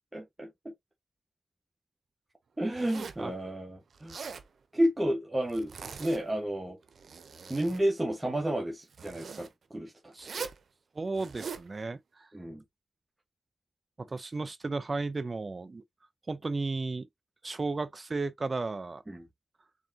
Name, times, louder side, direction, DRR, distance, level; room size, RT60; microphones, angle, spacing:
voice 1, 0.1-0.7 2.6-4.2 4.7-6.8 7.5-10.1 10.4-10.5 12.3-12.6 19.1-19.2, right 1 dB, 15° right, 1.4 m, -31 dB
Zipper (clothing), 2.7-3.3 3.9-4.5 5.5-6.4 6.8-7.8 8.9-9.5 10.2-10.6 11.1-11.7, right 5 dB, 75° right, 0.8 m, -42 dB
voice 2, 10.9-12.3 14.0-15.8 16.3-17.1 17.4-19.0, right 3 dB, 35° right, 0.6 m, -34 dB
4.7 x 3.6 x 2.8 m
wide cardioid pair, 95°, 0 cm